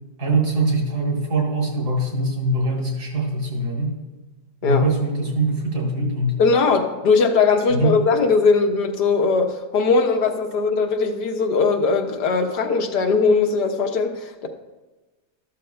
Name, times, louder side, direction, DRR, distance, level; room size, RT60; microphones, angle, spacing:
voice 1, 0.2-3.9 4.6-6.4 7.7-7.9, right 2 dB, 70° right, -1 dB, 3.1 m, -22 dB
voice 2, 6.4-14.5, left 4 dB, 80° left, 4 dB, 1.6 m, -19 dB
13.5 x 12.5 x 2.3 m, 1.2 s
omnidirectional pair, 1.8 m